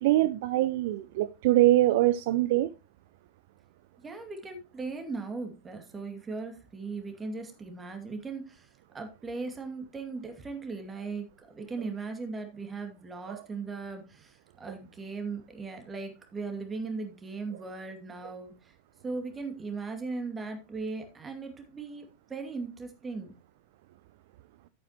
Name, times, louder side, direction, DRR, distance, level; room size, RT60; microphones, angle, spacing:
voice 1, 0.0-2.7 13.3-13.4, right 15 dB, 50° right, 0.4 m, -23 dB
voice 2, 4.0-8.7 8.9-18.5 19.0-23.3, right 4 dB, 15° right, 2.4 m, -38 dB
11.0 x 8.8 x 3.0 m
figure-of-eight pair, 90°, 0 cm